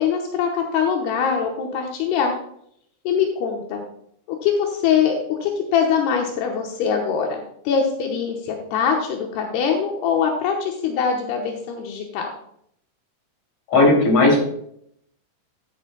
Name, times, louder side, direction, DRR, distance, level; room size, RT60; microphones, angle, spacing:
voice 1, 0.0-2.4 3.0-3.8 4.3-12.3, left 7 dB, 80° left, 1 dB, 3.0 m, -23 dB
voice 2, 13.7-14.4, left 2 dB, 35° left, -1 dB, 3.4 m, -15 dB
11.5 x 10.5 x 2.2 m, 0.70 s
omnidirectional pair, 4.7 m